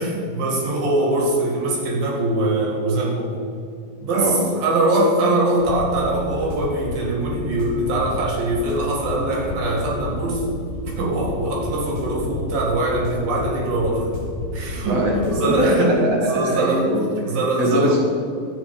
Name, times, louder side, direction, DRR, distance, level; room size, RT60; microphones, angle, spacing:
voice 1, 0.0-3.3 4.0-10.5 11.0-14.1 14.5-15.0 15.3-16.9 17.3-18.0, right 2 dB, 75° right, -3 dB, 3.9 m, -22 dB
voice 2, 4.1-4.5 14.9-18.0, equal, 30° right, -2 dB, 1.7 m, -22 dB
sound 1, 5.6-15.4, left 1 dB, 45° left, 4.7 m, -31 dB
13.0 x 9.2 x 4.8 m, 2.4 s
omnidirectional pair, 4.0 m